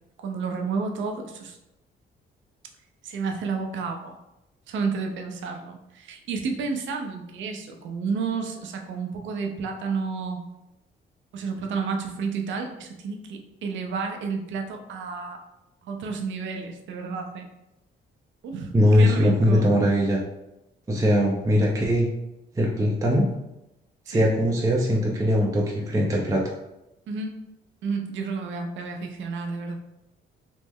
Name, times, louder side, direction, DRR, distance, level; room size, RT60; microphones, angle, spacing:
voice 1, 0.2-1.6 3.0-4.2 4.7-10.5 11.3-15.4 15.8-17.5 18.4-19.7 24.1-24.3 27.1-27.4 27.8-29.7, right 5 dB, 70° right, 3 dB, 0.6 m, -31 dB
voice 2, 18.7-20.2 20.9-22.1 22.6-23.3 24.1-26.4, equal, 15° right, -2 dB, 0.5 m, -21 dB
3.1 x 2.0 x 3.5 m, 0.91 s
cardioid pair, 90°, 20 cm